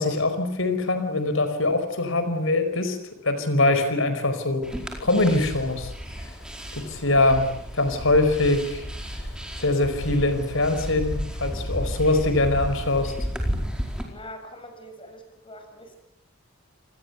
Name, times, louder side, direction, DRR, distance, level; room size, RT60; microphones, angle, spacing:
voice 1, 0.0-3.0 3.2-4.6 5.0-5.9 6.7-8.8 9.6-13.1, left 2 dB, 70° left, 9 dB, 4.9 m, -23 dB
sound 1, 4.6-14.0, equal, 5° right, 4.6 m, -32 dB
voice 2, 14.1-16.0, equal, 25° left, 6 dB, 6.6 m, -43 dB
28.0 x 20.5 x 8.2 m, 0.74 s
head